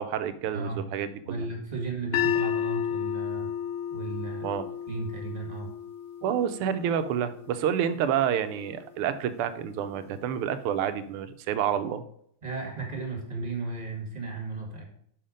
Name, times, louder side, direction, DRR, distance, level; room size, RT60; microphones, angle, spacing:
voice 1, 0.0-1.4 4.4-4.7 6.2-12.0, right 9 dB, 90° right, 11 dB, 1.5 m, -29 dB
voice 2, 1.2-3.5 3.9-4.5 4.9-5.7 12.4-14.8, right 3 dB, 20° right, 0 dB, 1.5 m, -34 dB
sound 1, 2.1-8.3, left 10 dB, 80° left, 1.6 m, -32 dB
5.7 x 5.5 x 5.0 m, 0.66 s
omnidirectional pair, 2.4 m